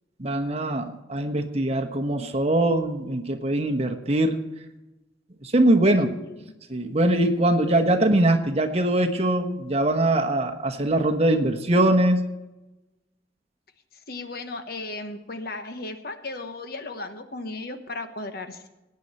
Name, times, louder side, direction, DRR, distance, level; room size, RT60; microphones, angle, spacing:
voice 1, 0.2-4.4 5.4-6.1 6.7-12.3, right 1 dB, 35° right, 4 dB, 1.2 m, -22 dB
voice 2, 6.0-6.5 14.1-18.7, left 2 dB, 55° left, 7 dB, 1.2 m, -35 dB
19.0 x 9.6 x 4.4 m, 1.0 s
head